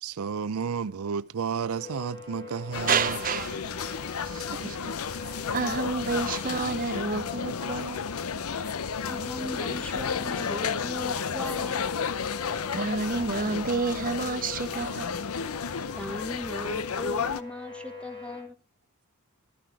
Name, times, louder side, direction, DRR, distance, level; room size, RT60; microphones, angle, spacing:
voice 1, 0.0-3.2, right 6 dB, 80° right, 0.5 m, -32 dB
sound 1, 1.7-18.4, left 4 dB, 20° left, 5.2 m, -44 dB
sound 2, 2.7-17.4, left 6 dB, 80° left, 0.7 m, -32 dB
voice 2, 2.7-8.0 12.7-15.1, right 4 dB, 40° right, 0.7 m, -30 dB
voice 3, 9.0-11.9 16.0-18.6, left 1 dB, 5° left, 1.1 m, -38 dB
12.5 x 10.0 x 4.7 m
head